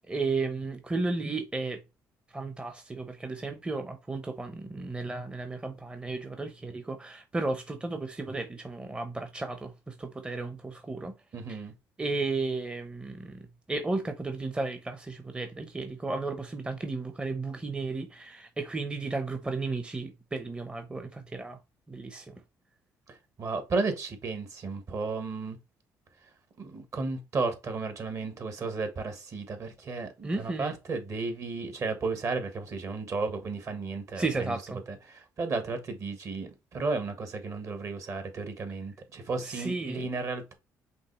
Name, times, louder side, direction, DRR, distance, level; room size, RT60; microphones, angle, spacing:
voice 1, 0.1-1.8 2.3-11.1 11.5-11.6 12.0-13.4 13.7-21.6 21.9-22.4 30.2-30.7 34.2-34.8 39.4-40.1, right 3 dB, 15° right, 0.8 m, -34 dB
voice 2, 11.3-11.7 23.1-25.6 26.6-34.5 34.9-40.5, right 3 dB, 50° right, 1.5 m, -33 dB
5.3 x 3.1 x 3.1 m
supercardioid pair, 80°, 7 cm